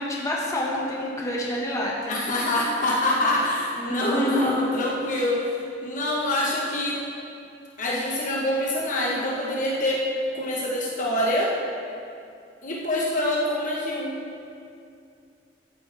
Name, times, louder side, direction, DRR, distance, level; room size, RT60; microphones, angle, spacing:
voice 1, 0.0-2.2 3.8-4.5, left 1 dB, 20° left, -4 dB, 1.7 m, -27 dB
voice 2, 2.1-5.5 5.8-7.0 7.8-10.1 10.3-11.5 12.6-14.1, left 1 dB, 45° left, -3 dB, 1.3 m, -25 dB
14.0 x 9.4 x 3.5 m, 2.5 s
head